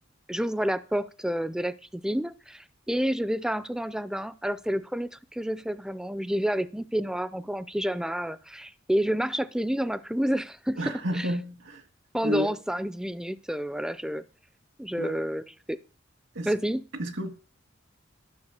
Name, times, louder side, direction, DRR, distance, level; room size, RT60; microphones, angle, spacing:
voice 1, 0.3-11.3 12.1-14.2 14.8-15.8 16.5-16.8, equal, 5° right, 0.5 m, -29 dB
voice 2, 10.8-11.8 12.2-12.5 15.0-15.2 16.3-16.5 17.0-17.3, equal, 70° right, 1.9 m, -31 dB
13.0 x 6.6 x 6.5 m
head